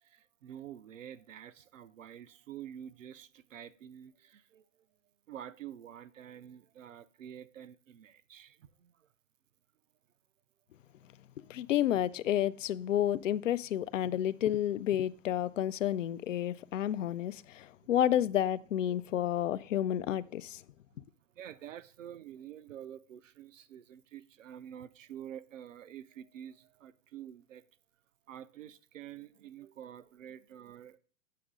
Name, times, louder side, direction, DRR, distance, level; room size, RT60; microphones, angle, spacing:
voice 1, 0.0-4.9 5.3-9.1 21.3-27.7 28.3-31.0, right 10 dB, 75° right, 0.6 m, -48 dB
voice 2, 11.5-20.6, left 11 dB, 70° left, 0.5 m, -30 dB
8.4 x 5.3 x 3.7 m
figure-of-eight pair, 110°, 39 cm